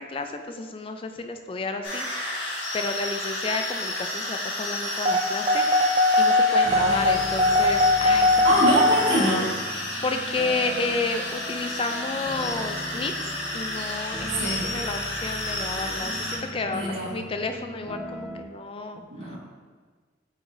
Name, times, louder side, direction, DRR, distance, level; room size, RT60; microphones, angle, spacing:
voice 1, 0.0-8.4 9.1-19.0, left 3 dB, 30° left, 6 dB, 0.4 m, -31 dB
sound 1, 1.8-16.4, left 1 dB, 80° left, 1.9 m, -31 dB
sound 2, 5.1-9.0, left 2 dB, 30° right, 0.5 m, -20 dB
sound 3, 6.6-18.4, equal, 5° right, 0.8 m, -40 dB
voice 2, 6.6-7.0 8.4-9.5 14.3-14.7 16.7-17.2 19.1-19.4, right 1 dB, 90° right, -6 dB, 1.9 m, -25 dB
8.7 x 4.7 x 2.7 m, 1.4 s
head